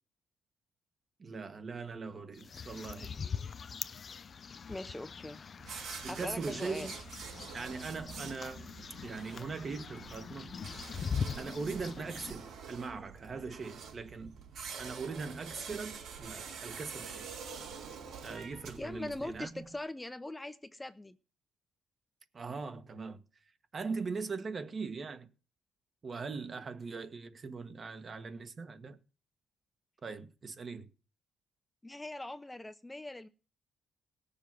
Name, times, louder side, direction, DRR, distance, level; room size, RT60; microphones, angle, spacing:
voice 1, 1.2-3.2 6.0-6.9 7.5-10.5 11.4-14.3 14.8-17.3 18.2-19.7 22.3-23.2 23.7-25.3 26.0-29.0 30.0-30.9, right 4 dB, 40° right, 1.4 m, -40 dB
sound 1, 2.4-12.3, left 6 dB, 45° left, 0.6 m, -42 dB
voice 2, 4.7-5.4 6.1-6.9 18.8-21.2 31.8-33.3, left 2 dB, 15° left, 0.9 m, -41 dB
sound 2, 5.6-19.4, right 6 dB, 75° right, 4.2 m, -47 dB
sound 3, 7.5-19.8, right 5 dB, 60° right, 4.2 m, -61 dB
18.0 x 7.1 x 6.1 m
cardioid pair, 90°, 0 cm